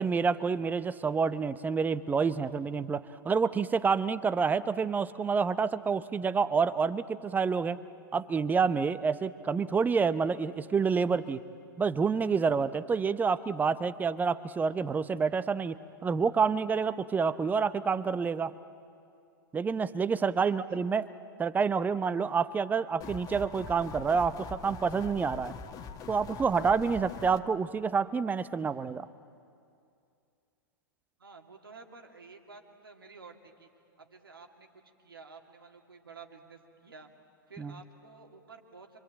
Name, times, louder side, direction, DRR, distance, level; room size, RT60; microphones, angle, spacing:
voice 1, 0.0-7.8 8.1-11.4 11.8-18.5 19.5-21.1 21.4-25.5 26.1-29.1 37.6-37.7, right 5 dB, 15° right, 14 dB, 0.8 m, -28 dB
voice 2, 20.4-21.2 31.2-33.7 34.0-37.1 37.5-39.0, right 4 dB, 85° right, 3 dB, 2.5 m, -52 dB
sound 1, 23.0-27.4, left 5 dB, 30° left, 1.5 m, -43 dB
25.5 x 25.0 x 8.9 m, 2.5 s
figure-of-eight pair, 100°, 12 cm